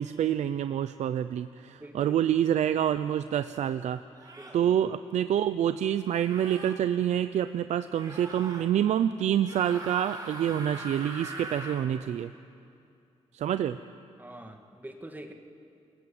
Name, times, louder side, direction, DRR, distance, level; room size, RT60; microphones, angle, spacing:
voice 1, 0.0-4.0 4.5-12.3 13.3-13.8, right 10 dB, 90° right, 11 dB, 0.6 m, -27 dB
voice 2, 1.8-2.2 4.4-4.7 14.2-15.3, right 1 dB, 15° right, 4 dB, 2.1 m, -44 dB
sound 1, 2.8-2.9 4.2-4.6 6.1-6.7 7.9-8.7 9.4-11.8, right 1 dB, 30° right, 6.1 m, -42 dB
29.5 x 21.5 x 8.8 m, 2.5 s
cardioid pair, 100°, 12 cm